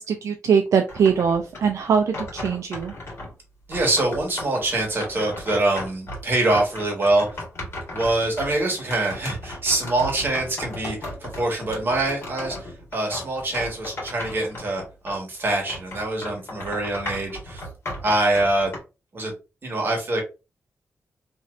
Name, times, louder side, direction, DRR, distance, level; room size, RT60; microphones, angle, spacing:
voice 1, 0.0-2.9, right 6 dB, 75° right, 4 dB, 0.4 m, -22 dB
sound 1, 0.9-3.3 3.7-15.2 15.5-18.8, left 1 dB, 50° left, 1.6 m, -36 dB
voice 2, 3.7-7.4 7.9-17.6 18.0-18.7 19.1-19.3 19.6-20.2, right 2 dB, 45° right, 1 dB, 1.3 m, -24 dB
3.1 x 2.7 x 2.4 m, 0.29 s
wide cardioid pair, 125°, 5 cm